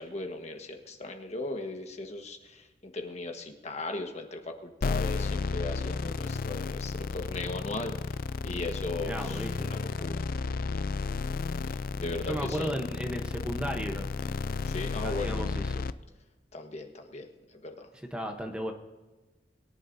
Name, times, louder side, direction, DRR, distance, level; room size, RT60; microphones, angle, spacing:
voice 1, 0.0-8.2 8.4-10.3 11.6-12.7 14.7-15.4 16.5-17.9, left 2 dB, 40° left, 4 dB, 1.4 m, -38 dB
sound 1, 4.8-15.9, left 4 dB, 55° left, 0.4 m, -32 dB
voice 2, 9.1-9.7 12.3-14.1 15.0-15.6 18.1-18.7, equal, 5° right, 3 dB, 0.9 m, -34 dB
22.0 x 11.0 x 2.7 m, 1.2 s
head